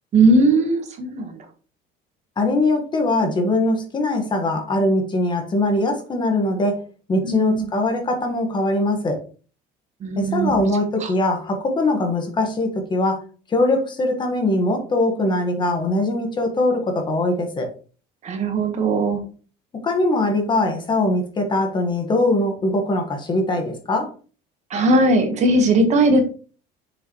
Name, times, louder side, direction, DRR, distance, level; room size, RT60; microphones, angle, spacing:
voice 1, 0.1-1.4 7.2-7.7 10.0-10.6 11.0-11.1 18.2-19.2 24.7-26.2, right 2 dB, 35° right, 6 dB, 1.5 m, -18 dB
voice 2, 2.4-6.8 7.1-9.2 10.2-13.2 13.5-17.7 19.8-24.1, left 2 dB, 25° left, 4 dB, 1.5 m, -21 dB
6.9 x 6.7 x 3.1 m, 0.38 s
cardioid pair, 165°, 19 cm